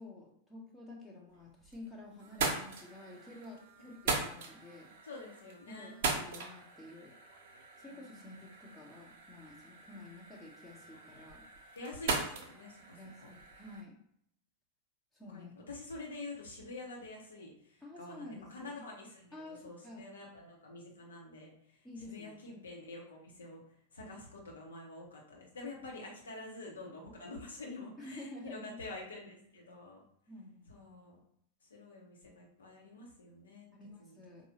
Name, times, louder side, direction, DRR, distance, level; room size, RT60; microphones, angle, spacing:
voice 1, 0.0-4.9 5.7-7.2 7.8-11.8 13.0-14.0 15.1-15.5 17.8-18.9 19.3-20.1 21.8-22.6 28.0-28.9 30.3-30.7 33.7-34.5, left 2 dB, 10° left, -3 dB, 0.9 m, -50 dB
sound 1, 1.3-1.9 2.2-13.8, right 4 dB, 55° right, 0.8 m, -40 dB
voice 2, 5.0-6.0 7.9-8.0 11.7-13.3 15.3-21.5 22.0-23.6 23.9-30.0 30.7-31.2 31.7-33.7 34.0-34.5, left 2 dB, 70° left, -2 dB, 1.2 m, -47 dB
4.5 x 2.7 x 2.9 m, 0.70 s
figure-of-eight pair, 90°, 0 cm